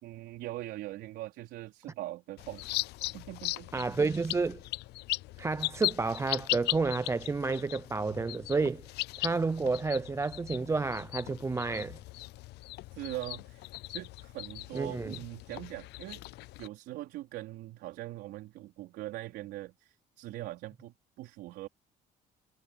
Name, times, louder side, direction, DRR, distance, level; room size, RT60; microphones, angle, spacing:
voice 1, 0.0-2.6 3.1-3.9 12.9-16.2 16.6-21.7, right 16 dB, 85° right, 4.3 m, -42 dB
sound 1, 2.4-16.7, left 19 dB, 80° left, 0.5 m, -38 dB
voice 2, 3.7-4.6 5.4-8.8 9.2-12.0 14.7-15.2, right 4 dB, 15° right, 0.4 m, -30 dB
cardioid pair, 110°, 17 cm